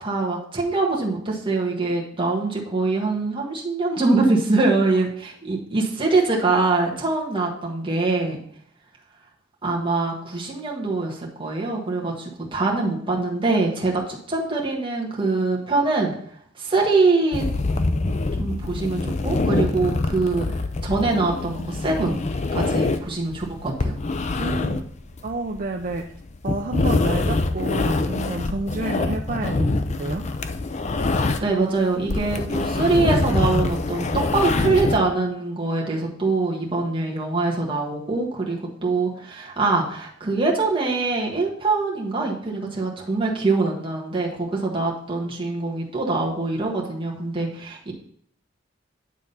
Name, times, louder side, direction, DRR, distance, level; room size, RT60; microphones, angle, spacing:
voice 1, 0.0-8.4 9.6-16.1 16.6-17.4 18.3-20.4 20.8-22.2 22.5-24.0 31.4-47.9, right 3 dB, 25° right, -3 dB, 1.5 m, -23 dB
sound 1, 17.3-31.6 31.9-35.0, left 2 dB, 35° left, 0.5 m, -25 dB
voice 2, 24.4-24.9 25.2-26.1 26.4-30.2, right 2 dB, 45° right, 3 dB, 0.6 m, -29 dB
9.2 x 3.7 x 5.5 m, 0.64 s
head